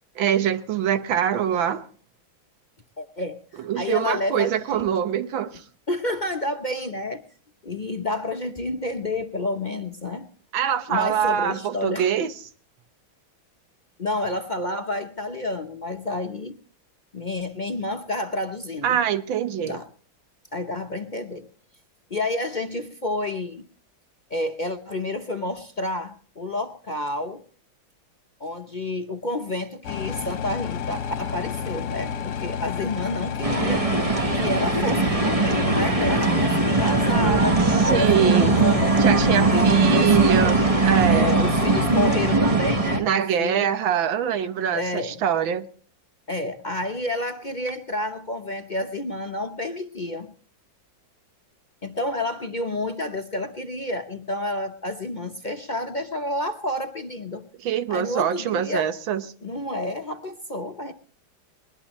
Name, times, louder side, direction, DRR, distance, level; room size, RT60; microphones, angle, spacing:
voice 1, 0.2-1.8 3.6-5.6 10.5-12.3 18.8-19.8 37.8-38.6 39.0-41.4 43.0-45.7 57.6-59.2, right 9 dB, 80° right, 1.7 m, -24 dB
voice 2, 3.0-4.9 5.9-7.2 7.6-10.3 10.9-12.1 14.0-16.6 17.1-19.0 19.6-19.9 20.5-21.5 22.1-23.7 24.3-27.4 28.4-33.9 34.3-37.6 37.9-38.8 39.5-40.6 41.1-43.1 43.4-43.7 44.7-45.2 46.3-50.3 51.8-57.5 57.9-58.9 59.4-60.9, left 2 dB, 40° left, 0.7 m, -29 dB
sound 1, 29.8-42.4, left 7 dB, 60° left, 1.4 m, -30 dB
sound 2, 33.4-43.0, right 3 dB, 25° right, 0.9 m, -20 dB
21.0 x 20.5 x 3.1 m
omnidirectional pair, 2.1 m